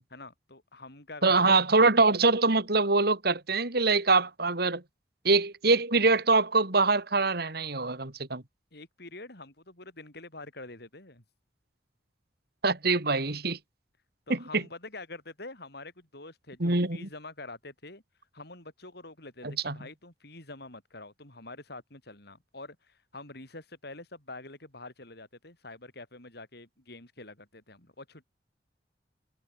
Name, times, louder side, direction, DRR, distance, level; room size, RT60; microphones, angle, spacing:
voice 1, 0.1-1.6 8.7-11.2 14.3-18.0 18.3-28.3, left 2 dB, 65° left, 8.0 m, -46 dB
voice 2, 1.2-4.8 5.2-8.4 12.6-13.6 14.3-14.6 16.6-17.1 19.4-19.8, right 3 dB, 60° right, 3.1 m, -24 dB
head